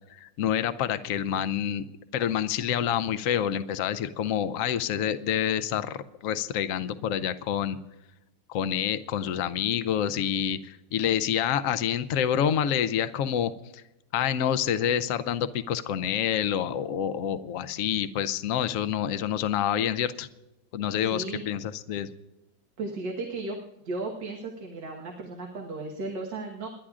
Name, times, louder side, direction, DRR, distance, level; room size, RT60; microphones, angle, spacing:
voice 1, 0.1-1.8 2.1-7.8 8.5-13.8 14.1-20.3 20.7-22.1, left 9 dB, 80° left, 11 dB, 0.7 m, -27 dB
voice 2, 17.7-18.0 21.0-21.4 22.8-23.6 23.9-26.7, right 3 dB, 65° right, 0 dB, 2.1 m, -35 dB
29.5 x 11.5 x 2.5 m, 0.94 s
omnidirectional pair, 2.1 m